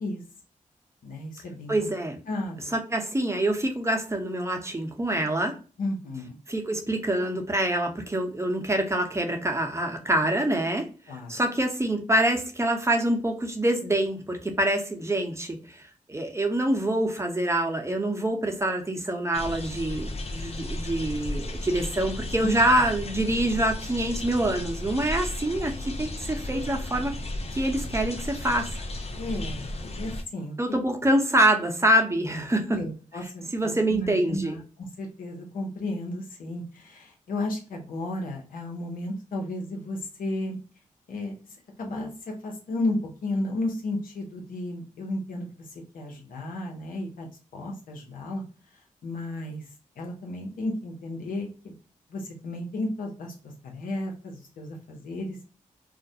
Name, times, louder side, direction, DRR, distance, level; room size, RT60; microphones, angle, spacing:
voice 1, 1.0-1.9 2.3-2.7 5.8-6.4 11.1-11.3 22.4-22.5 29.2-30.6 32.3-32.4 32.7-40.6 41.1-41.3 41.8-42.1 42.4-45.5 45.9-48.4 49.0-49.6 50.0-51.7 52.1-53.3 53.6-55.4, left 2 dB, 85° left, 0 dB, 0.7 m, -33 dB
voice 2, 1.7-2.2 2.7-5.5 6.5-10.9 11.3-27.1 27.6-28.8 30.6-32.8 33.5-34.6, right 1 dB, 20° right, 3 dB, 0.7 m, -26 dB
sound 1, 19.3-30.2, left 1 dB, 50° left, 0.5 m, -34 dB
2.4 x 2.1 x 2.6 m, 0.35 s
cardioid pair, 50°, 14 cm